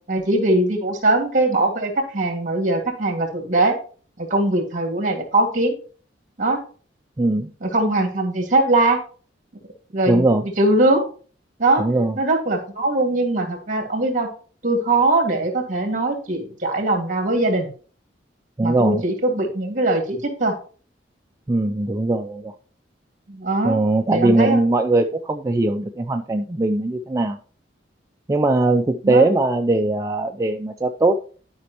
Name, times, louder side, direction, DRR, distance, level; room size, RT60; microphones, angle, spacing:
voice 1, 0.1-3.8 4.2-5.8 6.4-6.6 7.6-9.0 9.9-11.1 11.6-11.8 12.2-14.3 14.6-17.7 18.6-20.5 23.3-23.8 24.1-24.6 29.0-29.3, right 2 dB, 45° right, 4 dB, 1.9 m, -21 dB
voice 2, 7.2-7.5 10.1-10.4 11.8-12.2 18.6-19.0 21.5-22.5 23.6-27.4 28.3-31.1, right 2 dB, 20° right, 4 dB, 0.4 m, -20 dB
11.5 x 5.2 x 2.9 m, 0.40 s
head